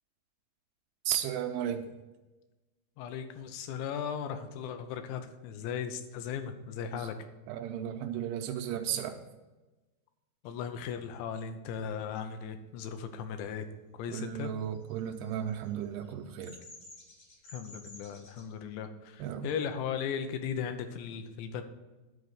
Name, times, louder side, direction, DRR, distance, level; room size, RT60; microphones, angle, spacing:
voice 1, 1.1-1.9 6.9-7.1 7.5-9.2 14.1-16.6 19.2-19.5, right 10 dB, 85° right, 4 dB, 2.3 m, -34 dB
voice 2, 3.0-7.2 10.4-13.7 14.0-14.5 17.5-21.6, left 7 dB, 85° left, 8 dB, 3.0 m, -37 dB
Bird vocalization bird call bird song, 14.7-18.4, left 2 dB, 50° left, 2.6 m, -52 dB
11.0 x 4.0 x 6.4 m, 1.1 s
omnidirectional pair, 5.1 m